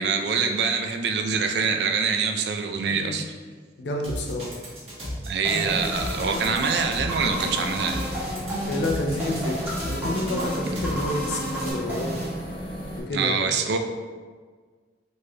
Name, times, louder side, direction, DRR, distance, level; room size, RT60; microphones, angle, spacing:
voice 1, 0.0-3.2 5.2-8.1 13.1-13.8, right 5 dB, 70° right, 5 dB, 0.3 m, -25 dB
voice 2, 2.9-3.2 3.8-4.6 8.7-12.2 13.0-13.5, left 1 dB, 80° left, 1 dB, 0.5 m, -29 dB
sound 1, 4.0-11.7, equal, 35° right, 1.0 m, -35 dB
sound 2, 5.4-12.8, equal, 10° right, 0.9 m, -32 dB
sound 3, 5.6-13.0, equal, 30° left, 0.4 m, -36 dB
4.1 x 3.2 x 2.2 m, 1.5 s
head